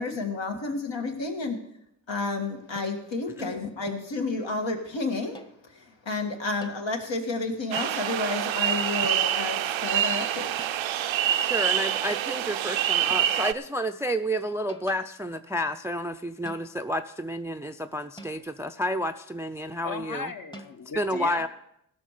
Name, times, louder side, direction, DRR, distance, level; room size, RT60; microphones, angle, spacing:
voice 1, 0.0-1.6 2.1-10.7, left 3 dB, 75° left, 3 dB, 1.9 m, -31 dB
sound 1, 2.8-3.2 3.9-4.2 5.3-5.7 6.6-6.9 7.8-8.1 9.0-9.5 10.6-11.0 12.1-12.4 13.1-13.4 14.4-15.2 16.4-17.0 18.2-18.7 20.5-20.8, right 1 dB, 10° left, 0.9 m, -48 dB
sound 2, 7.7-13.5, right 11 dB, 90° right, 0.5 m, -26 dB
voice 2, 11.1-20.3 21.0-21.5, equal, 5° right, 9 dB, 0.4 m, -30 dB
voice 3, 19.8-21.5, left 4 dB, 50° left, 8 dB, 1.0 m, -37 dB
16.0 x 6.2 x 6.5 m, 0.78 s
cardioid pair, 65°, 45 cm